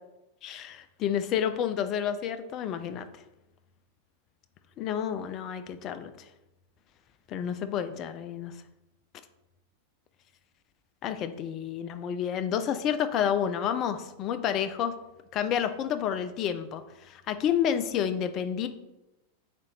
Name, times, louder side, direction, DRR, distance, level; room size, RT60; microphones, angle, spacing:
voice 1, 0.4-3.1 4.8-6.3 7.3-8.6 11.0-14.9 15.3-18.7, left 9 dB, 35° left, 10 dB, 0.3 m, -30 dB
4.0 x 3.6 x 3.2 m, 0.95 s
figure-of-eight pair, 90°, 0 cm